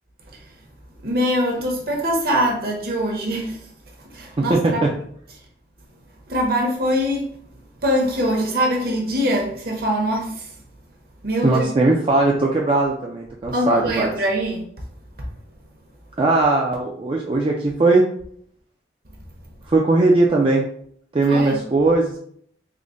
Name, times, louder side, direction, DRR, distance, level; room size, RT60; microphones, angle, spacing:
voice 1, 1.0-3.6 4.1-4.8 6.3-7.3 7.8-10.5 11.2-11.7 13.5-14.6 21.3-21.6, equal, 55° right, 0 dB, 0.9 m, -23 dB
voice 2, 4.4-4.9 11.4-14.1 16.2-18.0 19.7-20.6 21.1-22.2, right 2 dB, 30° right, -2 dB, 0.4 m, -19 dB
3.6 x 2.1 x 3.7 m, 0.64 s
head